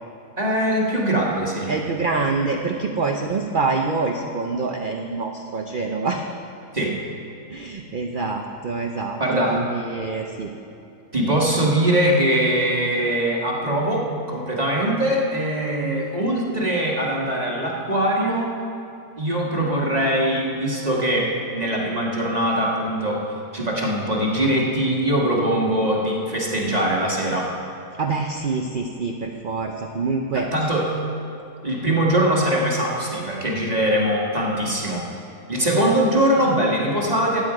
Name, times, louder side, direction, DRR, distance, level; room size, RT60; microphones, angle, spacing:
voice 1, 0.4-1.7 6.7-6.9 9.2-9.6 11.1-18.6 19.2-23.2 23.5-27.5 30.3-30.9 31.6-35.1 35.5-37.4, right 1 dB, 25° right, -3 dB, 1.4 m, -22 dB
voice 2, 1.7-6.2 7.5-9.2 9.5-10.5 28.0-30.5, right 4 dB, 65° right, 3 dB, 0.5 m, -26 dB
15.0 x 8.9 x 4.8 m, 2.7 s
omnidirectional pair, 1.7 m